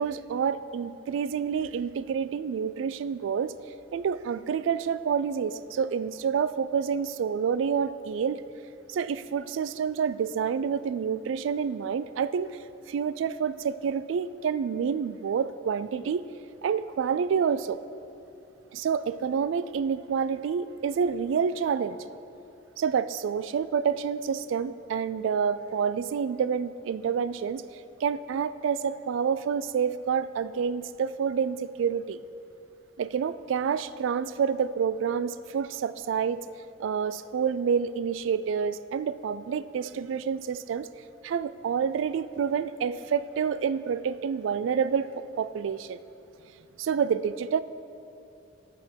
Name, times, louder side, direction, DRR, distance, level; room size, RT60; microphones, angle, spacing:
voice 1, 0.0-3.5 3.9-8.4 8.9-12.6 12.9-16.2 16.6-17.8 18.7-22.0 22.8-27.6 28.0-32.2 33.0-36.4 36.8-40.9 41.2-46.0 46.8-47.6, right 7 dB, 80° right, 16 dB, 0.3 m, -28 dB
8.5 x 5.9 x 6.3 m, 2.8 s
head